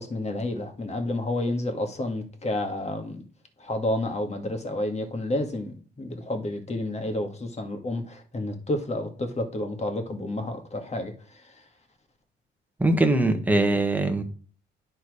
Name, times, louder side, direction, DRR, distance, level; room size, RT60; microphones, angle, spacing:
voice 1, 0.0-3.2 3.6-11.6, left 1 dB, 35° left, 1.9 m, -30 dB
voice 2, 12.8-14.2, right 2 dB, 10° right, 1.5 m, -22 dB
10.5 x 4.4 x 4.9 m
cardioid pair, 90°, 20 cm